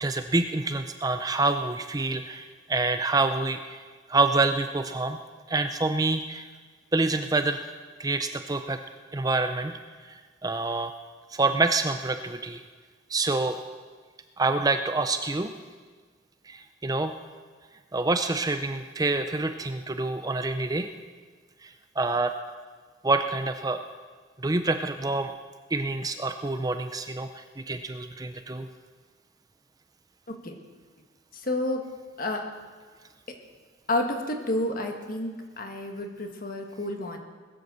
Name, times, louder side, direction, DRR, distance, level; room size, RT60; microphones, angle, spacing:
voice 1, 0.0-3.8 4.1-5.2 5.5-6.5 6.9-7.6 8.0-8.8 9.1-9.7 10.0-10.9 11.3-12.6 13.1-13.6 14.4-15.5 16.5-17.2 17.9-20.9 21.6-22.3 23.0-23.8 24.4-25.3 25.7-28.7, right 3 dB, 20° right, 8 dB, 0.5 m, -27 dB
voice 2, 30.3-30.6 31.3-31.8 32.2-32.5 33.9-37.2, left 1 dB, 45° left, 3 dB, 1.6 m, -30 dB
20.0 x 7.8 x 6.8 m, 1.5 s
head